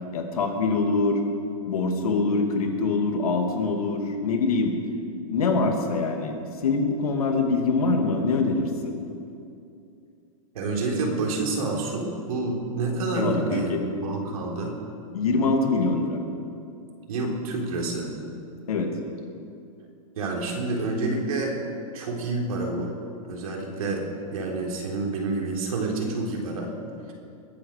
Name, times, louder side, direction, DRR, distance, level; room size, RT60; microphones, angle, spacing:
voice 1, 0.1-1.2 1.7-4.8 5.3-6.4 6.6-8.9 13.1-13.8 15.1-16.2 18.7-18.9, left 3 dB, 85° left, 3 dB, 2.6 m, -24 dB
voice 2, 10.5-14.8 17.1-18.1 20.2-21.6 21.9-22.9 23.2-26.7, right 3 dB, 75° right, -1 dB, 3.8 m, -28 dB
22.0 x 8.8 x 6.7 m, 2.5 s
hypercardioid pair, 145°, 18 cm